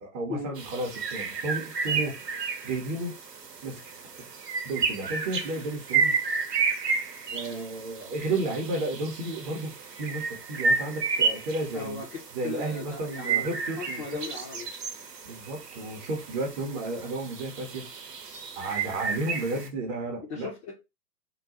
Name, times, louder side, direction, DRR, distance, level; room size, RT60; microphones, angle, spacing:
voice 1, 0.0-2.2 2.6-3.2 3.6-3.9 4.6-6.1 7.3-12.0 12.3-14.0 15.2-17.9 18.6-20.5, right 2 dB, 20° right, 0.7 m, -32 dB
sound 1, 0.6-19.7, right 5 dB, 75° right, 0.9 m, -32 dB
voice 2, 11.7-12.1 12.4-13.5 13.8-14.7 20.3-20.7, left 4 dB, 20° left, 0.5 m, -37 dB
3.7 x 2.2 x 2.8 m
figure-of-eight pair, 105°, 48 cm